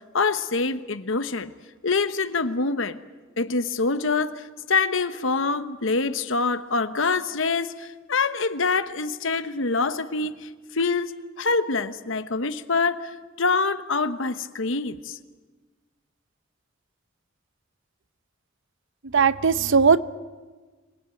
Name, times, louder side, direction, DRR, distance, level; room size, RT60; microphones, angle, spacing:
voice 1, 0.1-1.5 1.8-3.0 3.4-11.1 11.4-15.2, left 4 dB, 70° left, 11 dB, 1.1 m, -25 dB
voice 2, 19.1-20.0, right 5 dB, 65° right, 15 dB, 0.8 m, -18 dB
25.5 x 19.5 x 9.1 m, 1.4 s
head